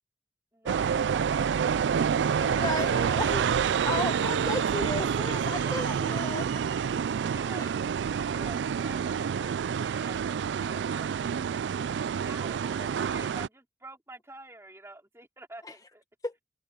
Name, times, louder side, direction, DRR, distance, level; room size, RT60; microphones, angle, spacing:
voice 1, 0.5-2.1 2.4-2.7 5.5-5.9 7.3-7.7 8.1-11.1 12.0-16.0, right 2 dB, 15° right, 3.5 m, -47 dB
sound 1, 0.7-13.5, right 7 dB, 90° right, 0.3 m, -28 dB
voice 2, 2.4-3.5 3.8-6.6 7.6-7.7 15.6-15.7 16.2-16.3, left 2 dB, 20° left, 1.4 m, -34 dB
head